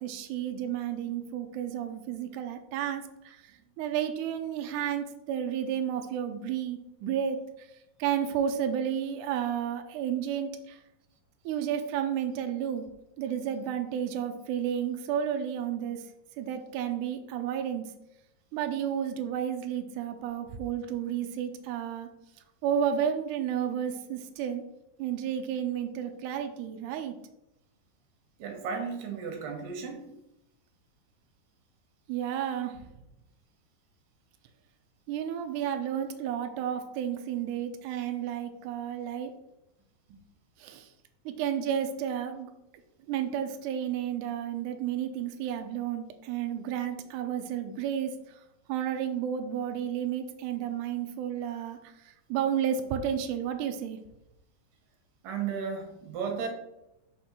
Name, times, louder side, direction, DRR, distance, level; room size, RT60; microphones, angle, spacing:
voice 1, 0.0-7.7 8.0-10.8 11.5-12.9 13.2-16.1 16.4-17.9 18.5-22.1 22.6-24.6 25.0-27.2 32.1-32.9 35.1-39.3 40.1-40.2 40.6-40.9 41.3-42.5 43.1-48.4 48.7-54.0, right 9 dB, 90° right, 6 dB, 1.8 m, -32 dB
voice 2, 28.4-30.1 55.2-56.5, right 6 dB, 70° right, 3 dB, 2.6 m, -34 dB
5.8 x 4.3 x 6.1 m, 0.87 s
omnidirectional pair, 4.3 m